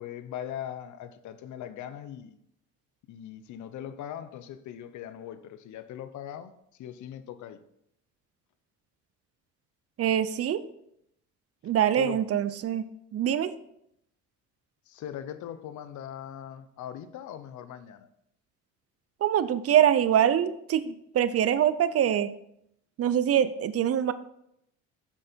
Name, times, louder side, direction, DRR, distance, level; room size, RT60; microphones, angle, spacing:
voice 1, 0.0-2.4 3.1-7.6 12.0-12.2 14.9-18.1, left 10 dB, 65° left, 0.8 m, -40 dB
voice 2, 10.0-10.6 11.6-12.8 13.1-13.5 19.2-22.3 23.0-24.1, right 10 dB, 45° right, 0.7 m, -24 dB
8.1 x 6.5 x 4.5 m
supercardioid pair, 90°, 32 cm